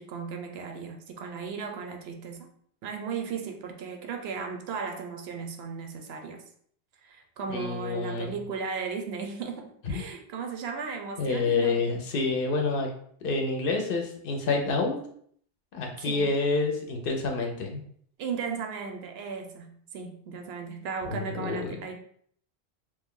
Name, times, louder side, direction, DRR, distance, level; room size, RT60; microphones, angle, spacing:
voice 1, 0.0-2.5 2.8-6.4 7.0-11.8 16.0-16.3 18.2-21.9, right 5 dB, 70° right, 3 dB, 0.8 m, -36 dB
voice 2, 7.5-8.4 9.9-10.0 11.2-12.9 13.2-14.9 15.7-17.8 21.1-21.8, left 3 dB, 65° left, 2 dB, 0.7 m, -28 dB
3.0 x 2.2 x 3.6 m, 0.62 s
omnidirectional pair, 1.1 m